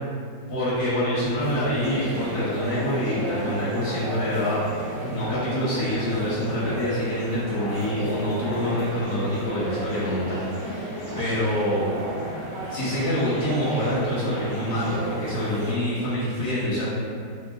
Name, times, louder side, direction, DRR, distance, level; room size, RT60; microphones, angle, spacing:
voice 1, 0.5-4.6 5.0-10.9 11.1-11.9 12.7-16.8, equal, 55° left, -10 dB, 0.9 m, -26 dB
sound 1, 1.4-15.7, right 1 dB, 50° right, 0.8 m, -33 dB
3.0 x 2.5 x 2.2 m, 2.3 s
omnidirectional pair, 1.9 m